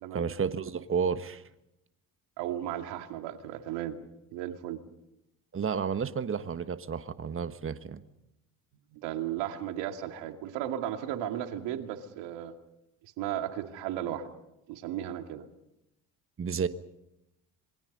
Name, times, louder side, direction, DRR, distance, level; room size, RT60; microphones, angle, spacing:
voice 1, 0.1-1.4 5.5-8.0 16.4-16.7, right 6 dB, 30° right, 11 dB, 1.4 m, -31 dB
voice 2, 2.4-4.0 4.3-4.8 8.9-12.5 13.0-14.3 14.7-15.4, right 11 dB, 70° right, 6 dB, 2.4 m, -35 dB
27.0 x 22.0 x 5.4 m, 0.86 s
hypercardioid pair, 65°, 44 cm